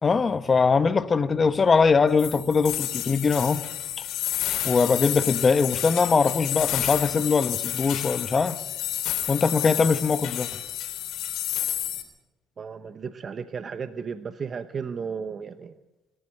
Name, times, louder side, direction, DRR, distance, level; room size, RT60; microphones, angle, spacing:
voice 1, 0.0-3.6 4.6-8.6 9.3-10.5, left 5 dB, 30° left, 1.2 m, -22 dB
sound 1, 2.2-12.0, left 12 dB, 75° left, 3.6 m, -30 dB
voice 2, 12.6-15.7, right 6 dB, 40° right, 0.8 m, -34 dB
24.0 x 12.5 x 9.1 m
cardioid pair, 95°, 0 cm